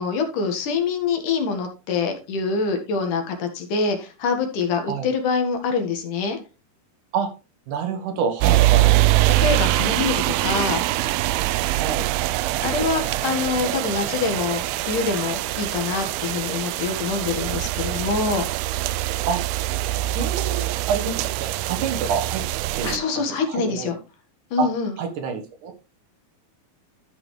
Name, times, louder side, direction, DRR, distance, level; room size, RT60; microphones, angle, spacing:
voice 1, 0.0-6.4 9.3-10.8 12.6-18.5 22.8-24.0 24.5-25.0, left 5 dB, 60° left, 5 dB, 2.9 m, -25 dB
voice 2, 7.7-8.9 11.8-12.1 19.3-19.4 20.1-22.4 22.8-23.0 23.5-23.9 24.6-24.7 25.0-25.7, right 6 dB, 65° right, 6 dB, 2.7 m, -27 dB
sound 1, 8.4-23.0, right 16 dB, 85° right, 2.4 m, -23 dB
12.5 x 6.0 x 3.2 m, 0.30 s
omnidirectional pair, 4.3 m